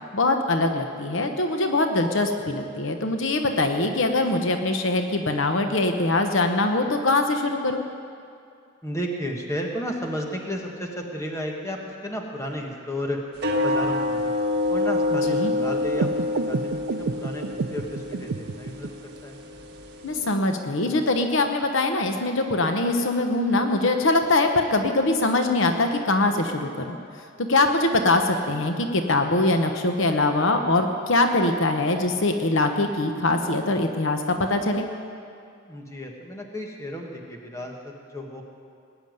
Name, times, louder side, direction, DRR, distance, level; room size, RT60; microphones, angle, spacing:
voice 1, 0.1-7.8 15.3-15.5 20.0-27.0 27.4-34.9, left 2 dB, 65° left, 5 dB, 0.9 m, -23 dB
voice 2, 8.8-13.2 13.6-14.3 14.7-19.4 35.6-38.4, equal, 15° left, 1 dB, 1.5 m, -33 dB
sound 1, 13.4-20.3, left 2 dB, 50° right, 1.7 m, -27 dB
sound 2, 15.9-18.9, right 4 dB, 85° right, 0.5 m, -30 dB
19.5 x 7.1 x 9.4 m, 2.4 s
head